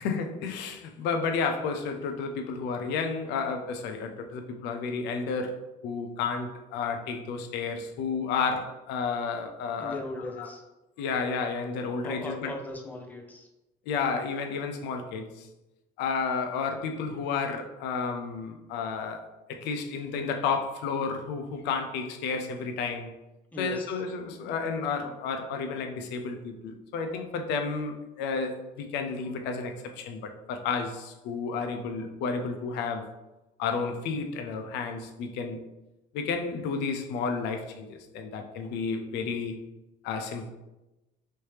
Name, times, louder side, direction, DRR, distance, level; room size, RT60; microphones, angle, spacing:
voice 1, 0.0-10.0 10.4-10.5 11.0-12.5 13.9-15.5 16.0-19.2 19.5-23.1 23.6-33.1 33.6-35.6 36.1-39.6 40.0-40.5, left 5 dB, 90° left, 6 dB, 0.5 m, -31 dB
voice 2, 9.8-10.6 12.0-13.5 23.5-24.0, left 2 dB, 10° left, 1 dB, 0.6 m, -38 dB
3.2 x 2.8 x 3.2 m, 0.99 s
cardioid pair, 110°, 17 cm